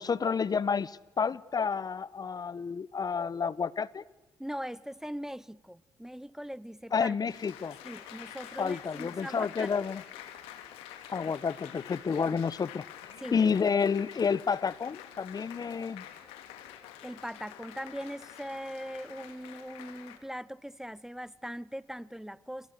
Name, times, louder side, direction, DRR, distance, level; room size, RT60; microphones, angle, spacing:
voice 1, 0.0-4.0 6.9-7.8 8.6-10.0 11.1-12.8 13.3-16.0, left 6 dB, 45° left, 21 dB, 1.0 m, -30 dB
voice 2, 4.4-7.2 7.8-9.7 13.2-13.4 17.0-22.7, equal, 5° right, 21 dB, 0.8 m, -40 dB
Applause, 7.3-20.2, left 11 dB, 85° left, 2.7 m, -47 dB
28.5 x 27.5 x 6.7 m, 1.2 s
hypercardioid pair, 50°, 10 cm